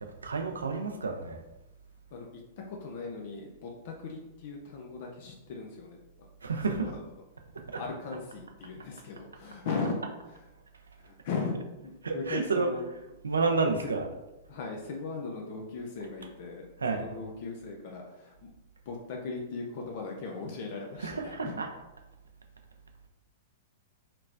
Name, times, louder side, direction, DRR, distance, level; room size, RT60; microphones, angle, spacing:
voice 1, 0.0-1.4 6.4-6.9 7.5-7.8 12.0-12.7 13.2-14.0 16.8-17.1 21.0-21.7, right 4 dB, 75° right, 4 dB, 0.5 m, -30 dB
voice 2, 2.7-6.0 6.8-7.0 7.8-10.0 10.3-10.4 11.0-11.5 11.8-12.9 14.0-14.1 14.5-16.6 16.9-18.4 18.9-21.5, left 4 dB, 50° left, 0 dB, 0.6 m, -38 dB
4.4 x 3.0 x 2.6 m, 0.97 s
figure-of-eight pair, 105°, 0 cm